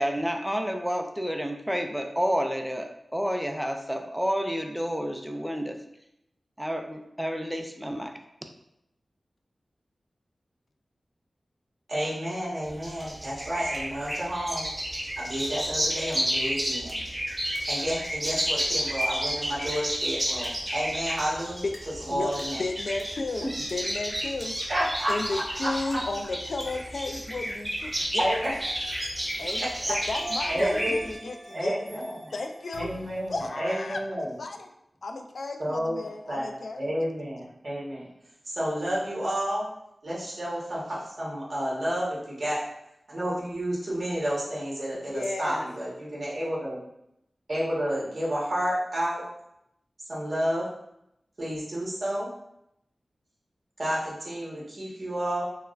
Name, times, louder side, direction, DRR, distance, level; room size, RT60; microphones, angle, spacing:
voice 1, 0.0-5.8 6.6-8.1, equal, 5° right, 4 dB, 0.4 m, -30 dB
voice 2, 11.9-14.7 15.2-16.9 17.7-21.6 22.1-22.6 23.4-23.5 24.7-26.0 28.2-28.5 29.9-30.0 30.5-30.9 31.5-32.3 32.8-34.3 35.6-38.0 38.4-39.7 40.0-42.6 43.1-46.8 47.5-49.2 50.1-50.7 51.4-52.3 53.8-55.4, equal, 55° right, -6 dB, 1.2 m, -30 dB
sound 1, 12.6-31.1, equal, 20° right, 1.4 m, -31 dB
sound 2, 13.0-13.1 13.7-13.9 14.5-14.8 15.4-15.5 16.1-16.2 16.9-17.0 17.5-17.6 18.3-18.5 19.0-19.1 19.7-19.9 20.4-20.7 21.2-21.3 21.7-21.8 22.4-22.5 23.0-23.1 23.7-23.8 24.4-24.5 25.1-25.5 25.9-26.1 26.6-27.0, equal, 25° left, 0.8 m, -48 dB
voice 3, 22.6-24.7 25.1-28.3 29.4-32.0 32.3-32.9 33.3-34.7 35.0-36.9 44.9-45.7, left 3 dB, 75° left, 5 dB, 0.3 m, -34 dB
sound 3, 26.6-28.0 28.4-33.5, right 1 dB, 85° right, 0.8 m, -45 dB
4.5 x 2.1 x 2.4 m, 0.80 s
wide cardioid pair, 80°, 0 cm